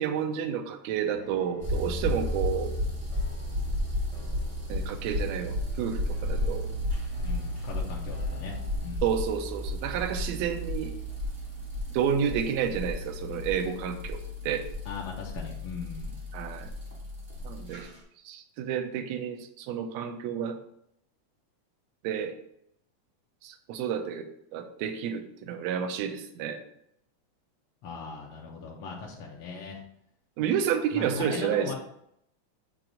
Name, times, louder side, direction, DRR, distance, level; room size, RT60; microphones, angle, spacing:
voice 1, 0.0-2.7 4.7-6.7 9.0-10.9 11.9-14.7 16.3-16.7 17.4-17.9 18.2-20.6 22.0-22.3 23.4-24.3 24.5-26.6 30.4-31.7, right 8 dB, 75° right, 6 dB, 1.7 m, -30 dB
sound 1, 1.1-9.1, left 1 dB, 25° left, 0.7 m, -51 dB
sound 2, 1.6-17.9, left 1 dB, 50° right, 0.5 m, -33 dB
voice 2, 7.2-9.0 14.8-16.1 27.8-29.8 30.9-31.7, left 4 dB, 70° left, -3 dB, 1.3 m, -39 dB
7.6 x 2.5 x 5.0 m, 0.74 s
omnidirectional pair, 3.5 m